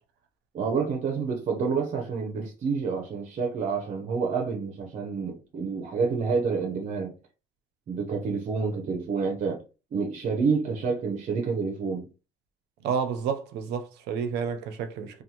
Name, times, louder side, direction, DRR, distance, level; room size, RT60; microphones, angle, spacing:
voice 1, 0.5-7.1 7.9-9.6 9.9-12.1, right 5 dB, 45° right, 0.7 m, -28 dB
voice 2, 12.8-15.2, right 6 dB, 85° right, 0.5 m, -30 dB
2.6 x 2.3 x 2.8 m
cardioid pair, 110°, 17 cm